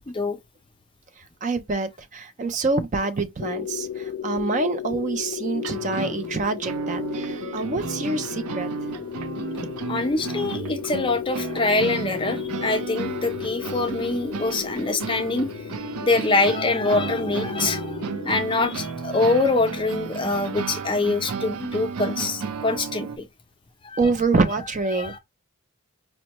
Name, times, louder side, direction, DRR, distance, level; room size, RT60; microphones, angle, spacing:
voice 1, 0.1-0.4 9.9-15.5 16.0-23.3 23.8-24.0 24.9-25.2, left 3 dB, 20° left, 0.5 m, -24 dB
voice 2, 1.2-8.7 9.6-9.7 24.0-25.2, right 3 dB, 35° right, 0.4 m, -26 dB
sound 1, 3.4-18.8, left 9 dB, 90° left, 0.3 m, -34 dB
sound 2, 5.5-23.2, right 5 dB, 90° right, 0.5 m, -33 dB
5.2 x 2.1 x 2.9 m
head